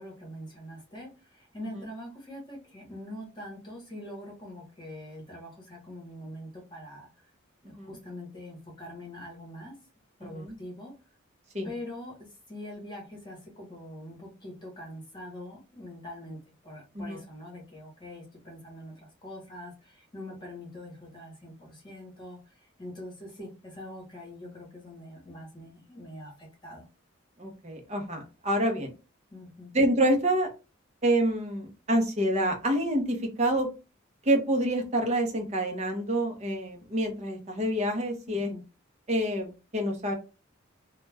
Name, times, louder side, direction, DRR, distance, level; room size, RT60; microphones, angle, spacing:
voice 1, 0.0-7.1 7.7-9.8 10.2-10.9 11.6-26.8 29.3-29.7 38.3-38.6, left 1 dB, 20° left, -2 dB, 0.9 m, -43 dB
voice 2, 10.2-10.6 11.5-11.7 16.9-17.2 27.4-28.9 29.7-30.5 31.0-33.7 34.2-38.5 39.1-40.1, right 1 dB, 35° right, 2 dB, 0.7 m, -27 dB
2.3 x 2.2 x 3.2 m, 0.30 s
head